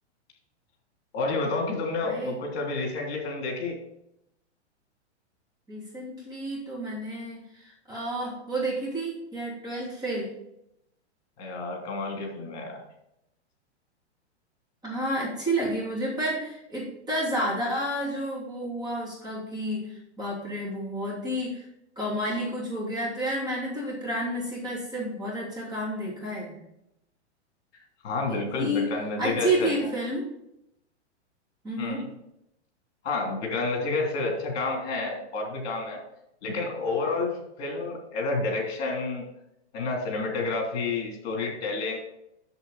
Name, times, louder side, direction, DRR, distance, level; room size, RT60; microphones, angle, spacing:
voice 1, 1.1-3.8 11.4-12.8 28.0-29.7 31.8-32.1 33.0-36.0 36.4-39.2 39.7-42.0, left 3 dB, 60° left, 1 dB, 3.1 m, -29 dB
voice 2, 2.0-2.3 5.7-10.3 14.8-21.7 22.0-26.6 28.3-28.9 29.2-30.3 31.6-32.0, right 1 dB, 10° right, -5 dB, 2.9 m, -30 dB
8.0 x 7.2 x 4.2 m, 0.81 s
hypercardioid pair, 150°, 35 cm